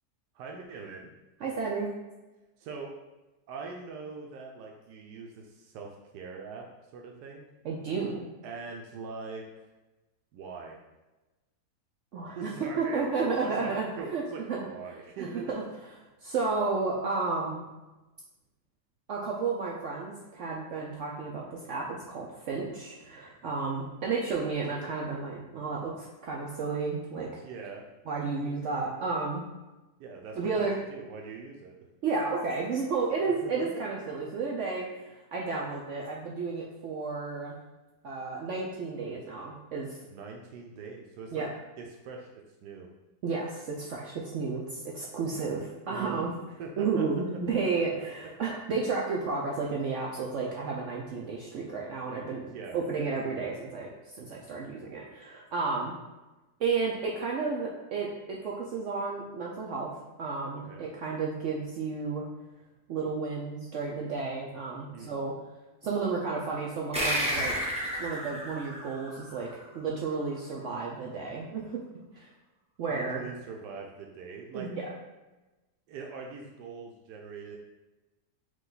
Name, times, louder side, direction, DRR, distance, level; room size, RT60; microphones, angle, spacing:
voice 1, 0.3-1.1 2.6-2.9 3.5-6.7 6.9-7.4 8.4-9.5 10.3-10.8 12.2-15.5 27.4-27.8 28.4-28.5 30.0-31.8 33.4-33.8 40.1-41.4 41.8-42.3 42.6-42.9 45.9-46.3 46.6-47.1 47.8-48.1 52.5-52.8 60.5-60.8 64.9-65.2 72.8-74.7 75.9-77.6, right 4 dB, 85° right, 0 dB, 1.2 m, -42 dB
voice 2, 1.4-1.9 7.6-8.3 12.1-12.5 12.8-14.2 14.5-14.6 15.5-15.6 16.2-17.6 19.1-27.4 28.1-29.4 30.4-30.8 32.0-37.6 38.0-40.0 41.3-41.5 43.2-46.3 46.8-53.9 54.2-55.9 56.6-59.9 60.2-62.3 62.9-65.3 65.8-67.6 68.0-69.5 69.7-71.8 72.1-72.3 72.8-73.2 74.5-74.8, right 4 dB, 65° right, -3 dB, 0.7 m, -32 dB
sound 1, 66.9-69.9, equal, 5° right, 0.5 m, -32 dB
4.9 x 2.4 x 3.8 m, 1.1 s
omnidirectional pair, 1.7 m